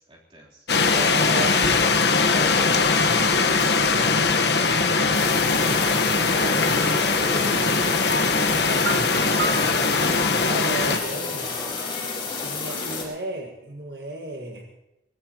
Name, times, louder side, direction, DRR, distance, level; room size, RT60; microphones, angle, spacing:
voice 1, 0.1-0.7 1.2-1.7 2.3-2.5 12.4-12.8, right 2 dB, 30° right, -3 dB, 3.6 m, -41 dB
sound 1, 0.7-11.0, left 4 dB, 70° left, 1.3 m, -21 dB
voice 2, 0.7-2.9 3.7-4.3 5.8-8.1 8.5-9.6 10.3-11.5 12.4-14.7, right 1 dB, 65° right, 2 dB, 1.7 m, -36 dB
sound 2, 5.1-13.0, left 4 dB, 30° left, 4.9 m, -30 dB
Piano, 8.1-12.9, right 3 dB, 90° right, 1.2 m, -34 dB
23.5 x 19.0 x 3.0 m, 0.91 s
head